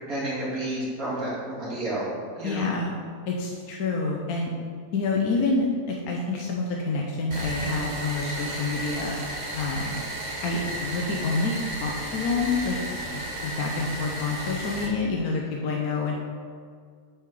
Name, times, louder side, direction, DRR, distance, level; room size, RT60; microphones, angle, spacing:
voice 1, 0.1-2.6, right 1 dB, 70° right, -7 dB, 2.9 m, -30 dB
voice 2, 2.4-3.0 3.3-4.5 4.9-9.2 9.6-10.0 10.4-12.8 13.1-16.2, left 3 dB, 75° left, -1 dB, 1.3 m, -28 dB
sound 1, 7.3-14.9, right 1 dB, 30° right, 1.4 m, -33 dB
7.8 x 5.7 x 4.8 m, 2.1 s
omnidirectional pair, 1.6 m